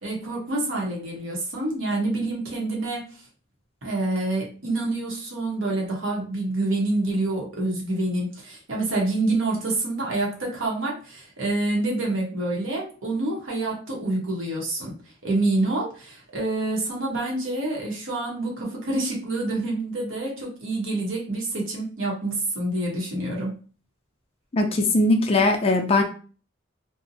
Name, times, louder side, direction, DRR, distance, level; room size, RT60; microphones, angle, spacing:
voice 1, 0.0-3.0 3.8-14.9 15.2-23.5, right 2 dB, 80° right, -2 dB, 0.9 m, -27 dB
voice 2, 24.5-26.0, left 2 dB, 30° left, 4 dB, 0.4 m, -20 dB
2.7 x 2.0 x 2.6 m, 0.38 s
head